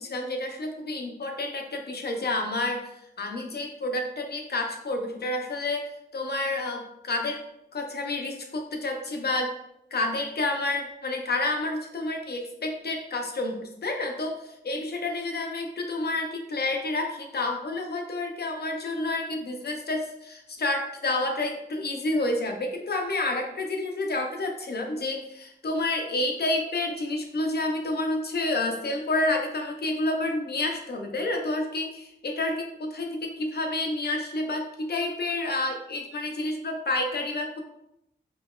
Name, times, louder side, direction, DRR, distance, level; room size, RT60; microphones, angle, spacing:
voice 1, 0.0-2.9 3.2-5.9 6.1-7.4 7.7-9.5 9.9-14.4 14.6-37.6, left 2 dB, 60° left, 3 dB, 0.6 m, -29 dB
5.0 x 2.9 x 2.4 m, 0.81 s
wide cardioid pair, 100°, 19 cm